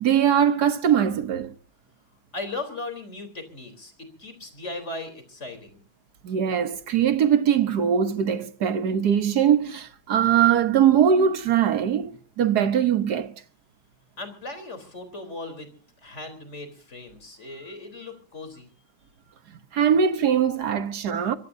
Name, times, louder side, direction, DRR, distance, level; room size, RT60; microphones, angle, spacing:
voice 1, 0.0-1.5 6.2-13.3 19.7-21.4, right 8 dB, 55° right, 1.6 m, -21 dB
voice 2, 2.3-5.8 14.2-15.7 16.0-18.7, left 2 dB, 35° left, 4.1 m, -37 dB
24.0 x 21.5 x 2.7 m
omnidirectional pair, 2.1 m